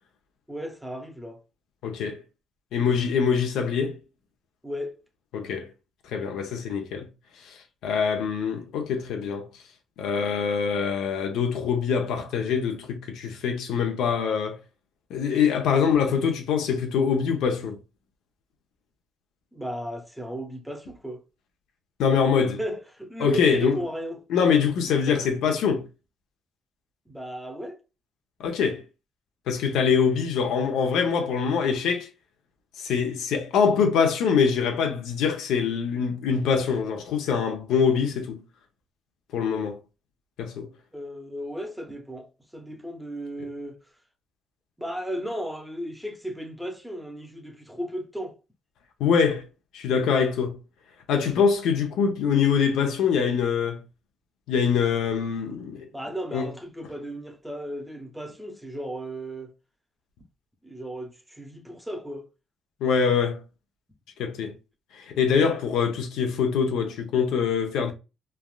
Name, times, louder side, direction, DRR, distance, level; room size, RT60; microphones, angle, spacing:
voice 1, 0.5-1.4 4.6-5.0 19.5-21.2 22.6-24.2 25.1-25.3 27.1-27.8 40.9-43.8 44.8-48.4 55.9-59.5 60.6-62.3, equal, 5° right, 0.8 m, -35 dB
voice 2, 1.8-2.2 2.7-4.0 5.3-5.7 6.0-7.1 7.4-7.6 7.8-9.5 10.0-14.6 15.1-17.8 22.0-22.6 23.2-23.8 24.3-25.9 28.4-28.8 29.5-32.1 32.8-38.4 39.3-39.8 40.4-40.7 49.0-49.4 49.7-50.6 51.1-53.8 54.5-55.9 56.3-56.5 62.8-63.4 64.2-64.5 64.9-67.9, left 6 dB, 85° left, 0.7 m, -24 dB
3.3 x 2.4 x 2.3 m
cardioid pair, 85°, 0 cm